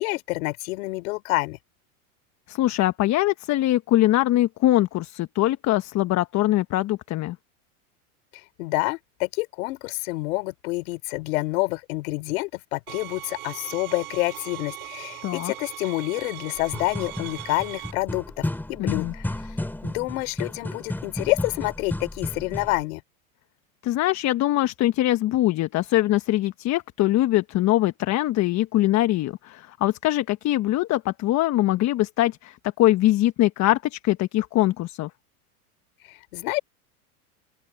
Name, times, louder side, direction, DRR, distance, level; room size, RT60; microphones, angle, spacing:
voice 1, 0.0-1.6 8.6-19.3 19.8-23.0 36.1-36.6, left 22 dB, 70° left, 4.1 m, -28 dB
voice 2, 2.5-7.4 15.2-15.5 18.8-19.1 23.8-35.1, left 15 dB, 40° left, 1.2 m, -22 dB
sound 1, 12.9-17.9, right 16 dB, 75° right, 6.6 m, -39 dB
sound 2, 16.6-22.8, left 1 dB, 5° left, 2.7 m, -33 dB
open air
supercardioid pair, 115°, 44 cm